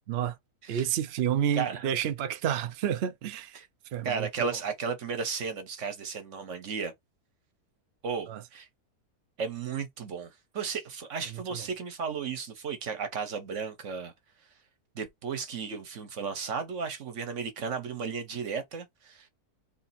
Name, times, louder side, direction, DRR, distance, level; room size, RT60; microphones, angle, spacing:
voice 1, 0.7-3.6 3.9-4.3 8.3-8.4 11.3-11.6, right 9 dB, 70° right, 0.6 m, -30 dB
voice 2, 1.6-1.9 3.5-3.7 4.0-6.9 8.0-8.7 9.4-14.1 14.9-19.3, right 5 dB, 55° right, 1.3 m, -34 dB
3.3 x 2.9 x 4.1 m
omnidirectional pair, 1.6 m